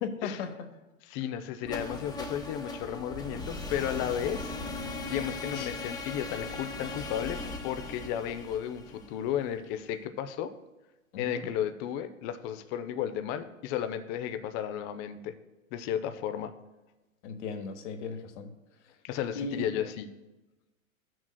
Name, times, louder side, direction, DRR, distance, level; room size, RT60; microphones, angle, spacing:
voice 1, 0.0-0.5 5.5-5.7 11.1-11.5 17.2-18.5 19.3-19.9, left 5 dB, 60° left, 7 dB, 1.3 m, -36 dB
voice 2, 1.1-4.6 5.1-10.5 11.2-15.3 15.7-16.5 19.0-20.1, left 10 dB, 25° left, 10 dB, 0.4 m, -34 dB
sound 1, 1.6-9.5, left 3 dB, 10° left, 0.8 m, -38 dB
14.5 x 6.2 x 2.2 m, 1.1 s
hypercardioid pair, 115°, 41 cm